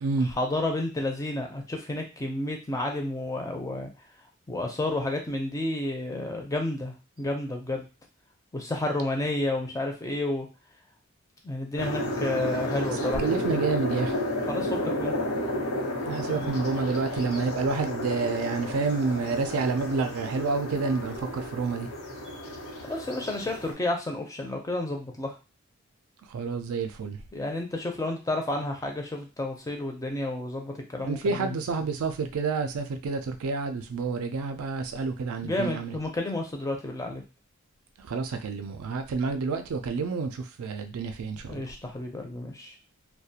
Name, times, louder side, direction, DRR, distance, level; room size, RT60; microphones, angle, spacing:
voice 1, 0.4-3.9 4.5-7.9 8.5-10.5 11.4-13.2 14.5-15.2 16.3-16.6 22.9-25.3 27.3-31.6 35.4-37.2 41.5-42.7, left 2 dB, 15° left, 2 dB, 0.4 m, -31 dB
sound 1, 11.8-23.7, left 1 dB, 75° left, 0.9 m, -32 dB
voice 2, 13.0-14.1 16.1-21.9 26.3-27.2 31.0-36.0 38.1-41.7, right 4 dB, 80° right, 7 dB, 0.4 m, -29 dB
2.4 x 2.2 x 2.7 m, 0.30 s
head